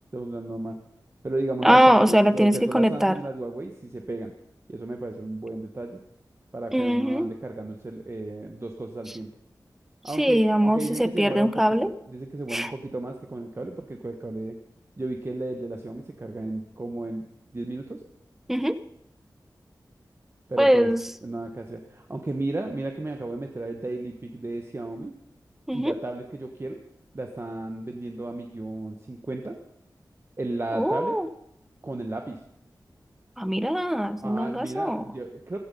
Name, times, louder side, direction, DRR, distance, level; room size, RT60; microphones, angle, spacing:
voice 1, 0.1-0.8 1.2-4.3 4.7-6.0 6.5-9.3 10.0-11.5 11.8-14.6 15.0-17.3 17.5-18.0 20.5-20.9 21.2-25.1 25.7-26.8 27.1-29.6 30.4-31.2 31.8-32.4 34.2-35.6, right 2 dB, 35° right, 4 dB, 1.2 m, -33 dB
voice 2, 1.6-3.2 6.7-7.3 10.2-11.9 12.5-12.7 18.5-18.8 20.6-21.0 25.7-25.9 30.7-31.3 33.4-35.0, equal, 5° right, 13 dB, 0.8 m, -21 dB
16.0 x 14.0 x 5.4 m, 0.75 s
wide cardioid pair, 80°, 8 cm